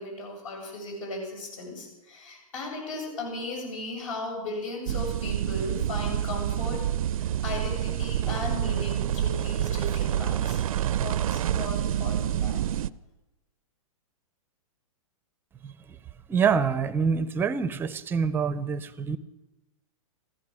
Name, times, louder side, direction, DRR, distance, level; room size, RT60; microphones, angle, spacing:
voice 1, 0.0-6.8 7.1-12.6, left 2 dB, 65° left, 7.4 m, -36 dB
sound 1, 4.9-12.9, right 11 dB, 75° right, 0.5 m, -27 dB
voice 2, 16.3-19.2, right 6 dB, 10° right, 0.6 m, -26 dB
15.0 x 14.0 x 6.3 m
hypercardioid pair, 145°, 18 cm